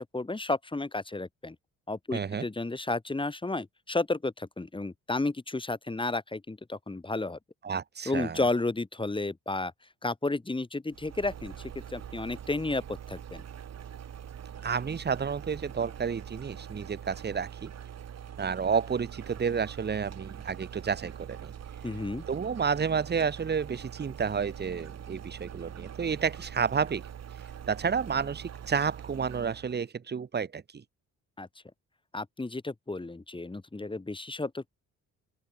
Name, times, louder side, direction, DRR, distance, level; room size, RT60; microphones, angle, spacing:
voice 1, 0.0-1.5 1.9-7.4 8.0-9.7 10.0-12.8 13.1-13.4 21.8-22.2 31.4-31.5 32.1-34.7, left 2 dB, 15° left, 3.2 m, -32 dB
voice 2, 2.1-2.4 7.6-8.4 14.6-17.7 18.4-21.5 22.3-27.0 27.7-30.8, right 6 dB, 35° right, 1.6 m, -30 dB
sound 1, 10.9-29.8, right 9 dB, 60° right, 5.6 m, -44 dB
open air
cardioid pair, 90°, 30 cm